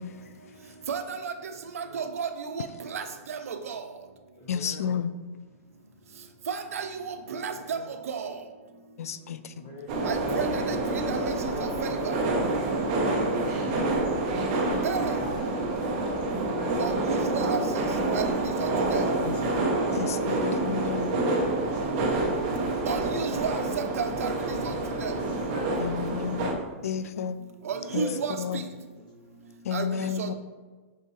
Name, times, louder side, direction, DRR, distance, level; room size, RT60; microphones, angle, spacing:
voice 1, 0.9-1.3 1.8-2.3 2.6-2.7 2.9-3.0 3.3-3.8 6.5-7.8 8.1-8.3 10.1-10.5 11.1-11.2 11.8-11.9 14.8-15.0 16.8-17.6 18.1-18.3 18.6-18.7 22.9-24.3 24.6-24.7 25.0-25.1 27.7-28.3 29.7-29.8 30.2-30.3, right 6 dB, 80° right, 8 dB, 0.7 m, -32 dB
voice 2, 1.8-2.1 4.3-5.0 7.5-7.9 9.5-10.0 13.7-14.3 16.1-16.8 19.1-19.9 21.0-22.1 25.0-25.8 27.7-29.0, equal, 35° left, -3 dB, 1.8 m, -42 dB
voice 3, 4.5-5.1 9.0-9.4 19.2-19.4 20.0-21.1 25.8-27.4 27.9-28.0 28.4-28.6 29.7-30.3, left 7 dB, 90° left, 13 dB, 0.4 m, -31 dB
sound 1, 9.9-26.5, right 2 dB, 30° right, 0.8 m, -27 dB
5.6 x 5.5 x 3.2 m, 1.3 s
hypercardioid pair, 170°, 8 cm